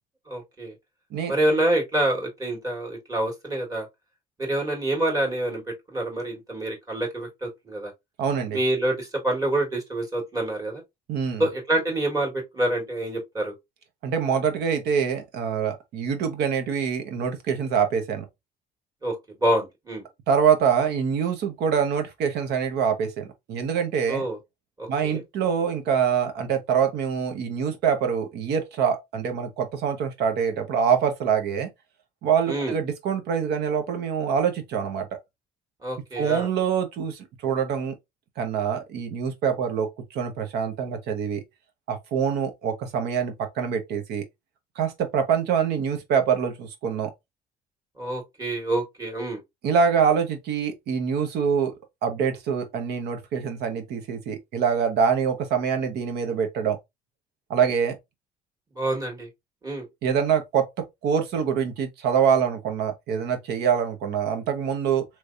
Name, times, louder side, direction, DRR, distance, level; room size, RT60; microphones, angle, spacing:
voice 1, 0.3-0.7 1.3-3.9 4.4-7.9 8.5-10.8 11.4-13.5 19.0-20.0 24.1-24.4 24.8-25.2 32.5-32.7 35.8-36.5 48.0-49.4 58.7-59.3 59.6-59.9, right 1 dB, 20° right, 1.6 m, -27 dB
voice 2, 8.2-8.6 11.1-11.4 14.0-18.2 20.3-24.2 24.9-31.7 32.2-35.1 36.2-37.9 38.4-41.4 41.9-44.2 44.8-47.1 49.6-51.7 52.0-56.8 57.5-58.0 60.0-65.0, right 7 dB, 75° right, 1.1 m, -25 dB
3.3 x 3.1 x 2.5 m
cardioid pair, 110°, 17 cm